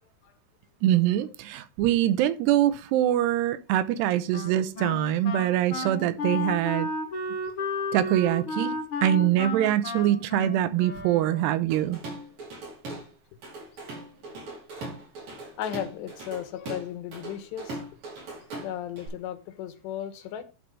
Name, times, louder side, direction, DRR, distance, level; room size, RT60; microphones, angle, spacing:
voice 1, 0.8-6.9 7.9-8.7 9.0-12.0, right 12 dB, 80° right, 2.8 m, -24 dB
Wind instrument woodwind instrument, 4.3-11.7, left 2 dB, 50° left, 1.7 m, -33 dB
Drum kit / Drum, 11.7-13.1 13.4-19.1, right 2 dB, 50° right, 6.3 m, -39 dB
voice 2, 15.3-17.8 18.6-20.4, left 10 dB, 80° left, 3.3 m, -36 dB
11.5 x 4.5 x 5.3 m
omnidirectional pair, 4.9 m